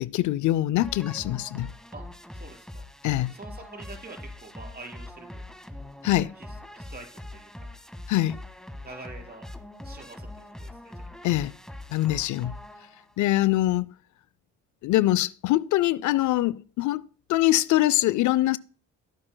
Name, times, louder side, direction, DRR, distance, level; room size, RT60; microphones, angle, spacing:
voice 1, 0.0-1.7 3.0-3.3 6.0-6.3 8.1-8.4 11.2-11.5 11.9-12.6 13.2-13.9 14.8-18.6, left 15 dB, 75° left, 0.5 m, -24 dB
sound 1, 0.8-13.2, left 1 dB, ahead, 1.6 m, -42 dB
voice 2, 2.3-2.7 3.3-5.4 6.4-7.7 8.8-9.4 9.8-10.9, right 3 dB, 30° right, 4.7 m, -45 dB
15.5 x 8.7 x 2.2 m
cardioid pair, 90°, 30 cm